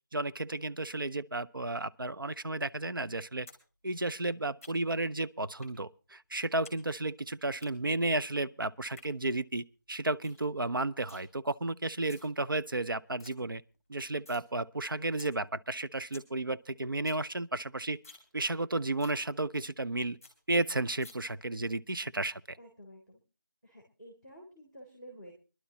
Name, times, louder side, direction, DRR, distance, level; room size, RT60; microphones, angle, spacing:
voice 1, 0.1-3.5 3.8-13.6 13.9-18.0 18.3-20.2 20.5-22.6, right 2 dB, 90° right, 0.8 m, -33 dB
sound 1, 3.5-3.6 3.9-5.0 5.6-5.8 6.1-6.8 7.1-7.7 8.7-9.1 9.5-9.6 9.9-10.0 10.2-10.4 10.7-11.2 11.9-12.3 12.7-12.8 13.0-13.3 13.7-14.4 14.8-14.9 15.2-15.3 15.7-15.8 16.0-16.3 16.6-16.7 16.9-17.2 17.6-17.7 18.0-18.3 18.6-18.7 19.0-19.2 19.6-19.7 19.9-20.0 20.2-20.3 21.0-21.1, left 3 dB, 10° left, 2.7 m, -52 dB
voice 2, 22.6-23.2 23.6-25.3, equal, 15° right, 2.4 m, -51 dB
24.5 x 11.5 x 2.9 m
figure-of-eight pair, 175°, 11 cm